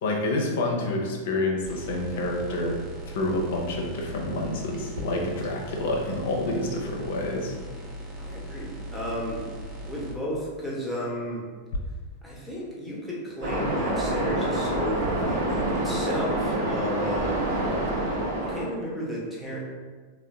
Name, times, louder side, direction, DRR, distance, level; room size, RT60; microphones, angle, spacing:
voice 1, 0.0-2.8 3.1-7.5, left 2 dB, 55° left, 0 dB, 0.6 m, -28 dB
sound 1, 1.6-10.1, equal, 25° right, 0.6 m, -39 dB
sound 2, 4.9-5.5 7.5-7.7, equal, 80° right, 0.7 m, -40 dB
voice 2, 8.2-9.5 9.8-11.5 12.2-17.6 18.5-19.6, equal, ahead, -6 dB, 0.9 m, -33 dB
Waves surf, 13.4-18.7, right 1 dB, 55° right, 1.0 m, -27 dB
3.7 x 2.2 x 3.4 m, 1.5 s
figure-of-eight pair, 90°, 0 cm